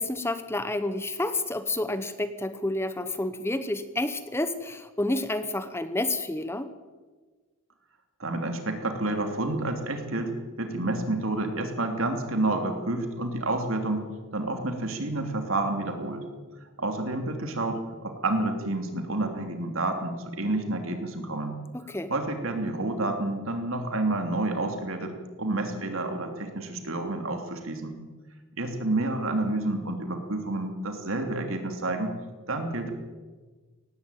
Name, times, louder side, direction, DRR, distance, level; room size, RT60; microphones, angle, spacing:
voice 1, 0.0-6.7 21.7-22.1, left 2 dB, 10° left, 11 dB, 0.9 m, -29 dB
voice 2, 8.2-10.3 10.6-16.2 16.8-21.6 22.1-25.1 25.4-27.9 28.6-32.1 32.5-32.9, right 2 dB, 65° right, 5 dB, 3.0 m, -29 dB
18.5 x 15.5 x 9.2 m, 1.4 s
head